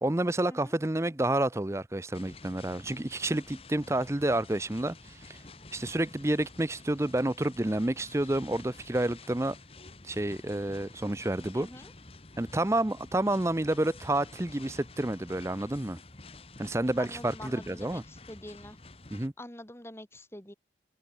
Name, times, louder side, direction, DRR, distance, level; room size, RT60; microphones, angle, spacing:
voice 1, 0.0-5.4 5.7-9.6 10.0-11.7 12.4-16.0 16.6-18.0 19.1-19.3, right 1 dB, 15° right, 0.6 m, -29 dB
sound 1, 2.1-19.3, left 3 dB, 35° left, 1.7 m, -50 dB
voice 2, 11.5-11.9 17.0-18.8 19.4-20.5, left 1 dB, 15° left, 1.9 m, -45 dB
head